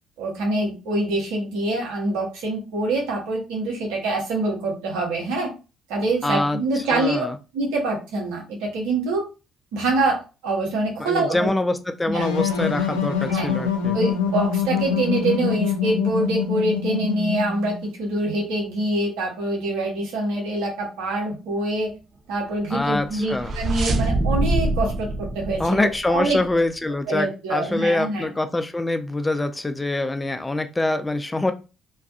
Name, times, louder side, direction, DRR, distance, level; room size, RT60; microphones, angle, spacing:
voice 1, 0.2-5.5 5.9-7.2 7.5-9.3 9.7-11.5 12.1-12.2 13.2-13.5 13.9-21.9 22.3-26.4 27.1-28.3, right 2 dB, 75° right, 0 dB, 0.9 m, -25 dB
voice 2, 6.2-6.6 6.9-7.4 11.0-14.0 22.7-23.5 25.6-31.5, left 2 dB, 20° left, 8 dB, 0.3 m, -24 dB
sound 1, 12.2-17.8, left 7 dB, 90° left, 0.4 m, -25 dB
sound 2, 23.0-26.5, right 2 dB, 50° right, 0.4 m, -25 dB
2.4 x 2.2 x 2.4 m, 0.30 s
hypercardioid pair, 50°, 0 cm